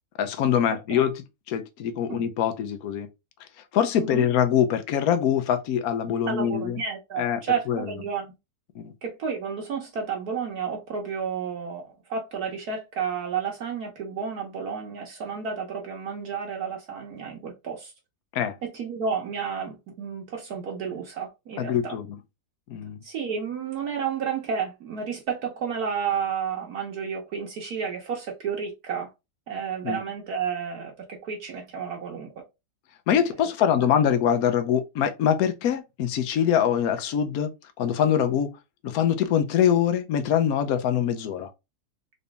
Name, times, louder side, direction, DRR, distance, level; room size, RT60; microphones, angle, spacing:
voice 1, 0.2-1.1 1.5-3.1 3.7-6.8 7.2-7.4 7.7-7.9 8.8-8.9 18.3-18.5 21.6-22.1 22.7-23.0 29.8-30.0 33.1-37.5 37.8-38.5 38.8-41.5, left 9 dB, 65° left, 1.1 m, -23 dB
voice 2, 6.3-8.3 9.0-17.9 18.6-22.0 23.0-29.1 29.5-32.3, right 6 dB, 65° right, 1.3 m, -31 dB
4.0 x 2.7 x 3.4 m
omnidirectional pair, 1.8 m